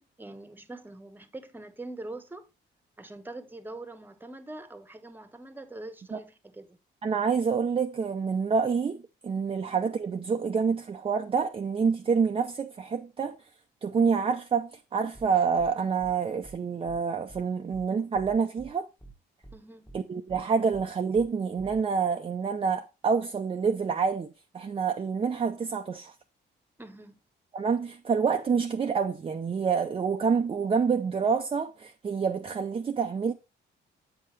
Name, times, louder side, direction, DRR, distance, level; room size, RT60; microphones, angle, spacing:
voice 1, 0.0-2.5 3.0-6.8 9.5-9.6 19.5-19.9 26.8-27.2, right 2 dB, 10° right, 1.0 m, -43 dB
voice 2, 7.0-13.3 13.8-18.9 19.9-24.3 24.5-26.1 27.5-33.3, right 5 dB, 30° right, 0.5 m, -27 dB
sound 1, 15.1-15.3 15.6-15.7 16.0-16.1 16.4-16.6 16.9-17.0 17.3-17.4 17.7-17.9 18.1-18.7 19.0-19.1 19.4-19.6 19.9-20.0 20.3-20.4 20.7-20.9 21.1-21.3 21.6-21.8, right 2 dB, 10° left, 1.2 m, -48 dB
7.8 x 5.6 x 3.1 m
cardioid pair, 90°, 20 cm